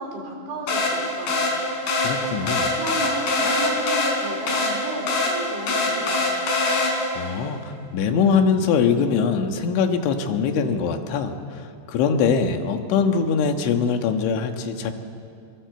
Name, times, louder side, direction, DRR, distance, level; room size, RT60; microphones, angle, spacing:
voice 1, 0.0-1.5 2.5-6.2, right 2 dB, 80° right, 0 dB, 6.6 m, -33 dB
sound 1, 0.7-7.3, left 2 dB, 55° left, 6.1 m, -23 dB
voice 2, 2.0-2.6 7.2-14.9, left 6 dB, 80° left, 5 dB, 3.8 m, -22 dB
24.5 x 23.0 x 8.0 m, 2.4 s
omnidirectional pair, 5.3 m